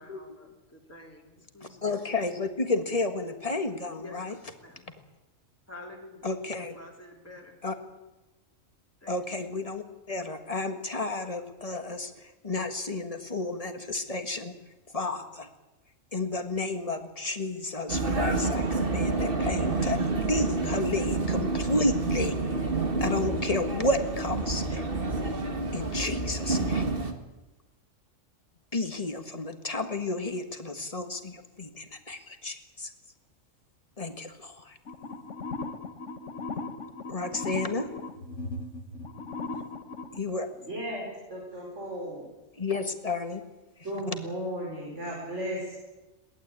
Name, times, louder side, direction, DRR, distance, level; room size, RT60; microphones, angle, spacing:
voice 1, 0.0-2.0 4.0-4.9 5.7-6.3 6.7-7.6 9.0-9.5, left 2 dB, 10° left, -1 dB, 3.3 m, -48 dB
voice 2, 1.6-4.4 6.2-6.8 7.6-7.7 9.1-12.1 12.4-14.5 14.9-15.5 16.1-22.4 23.0-24.9 25.7-26.8 28.7-32.9 34.0-34.8 37.1-37.9 40.1-40.5 42.6-43.4, left 2 dB, 25° left, 7 dB, 1.8 m, -31 dB
Vehicle, 17.9-27.1, right 3 dB, 40° right, 2.1 m, -28 dB
sound 1, 34.9-40.2, left 3 dB, 65° left, 1.7 m, -37 dB
voice 3, 40.6-42.3 43.8-45.7, equal, 60° right, -3 dB, 6.0 m, -35 dB
22.0 x 18.5 x 8.7 m, 1.1 s
omnidirectional pair, 1.4 m